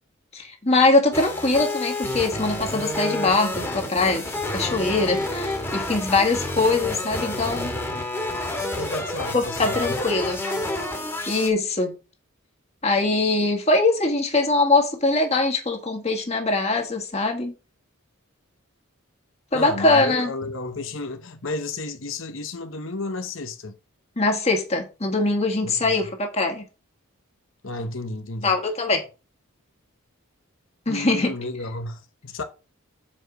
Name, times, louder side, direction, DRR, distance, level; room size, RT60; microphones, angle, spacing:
voice 1, 0.3-4.3 4.5-7.7 9.3-10.4 11.3-11.9 12.8-17.5 19.5-20.3 24.2-26.6 28.4-29.0 30.9-31.3, left 2 dB, 30° left, 1.8 m, -22 dB
sound 1, 1.1-11.5, left 1 dB, 10° left, 1.9 m, -29 dB
voice 2, 8.8-10.0 19.5-23.7 25.6-25.9 27.6-28.5 30.9-32.4, left 2 dB, 60° left, 1.0 m, -32 dB
7.4 x 4.9 x 6.1 m
head